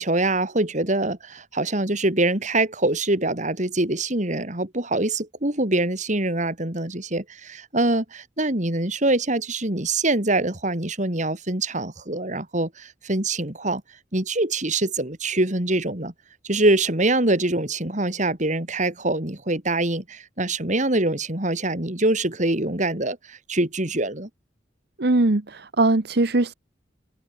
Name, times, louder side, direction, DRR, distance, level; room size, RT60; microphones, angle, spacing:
voice 1, 0.0-13.8 14.1-16.1 16.4-24.3, right 2 dB, 40° right, 3.2 m, -24 dB
voice 2, 25.0-26.5, right 2 dB, 60° right, 1.1 m, -20 dB
head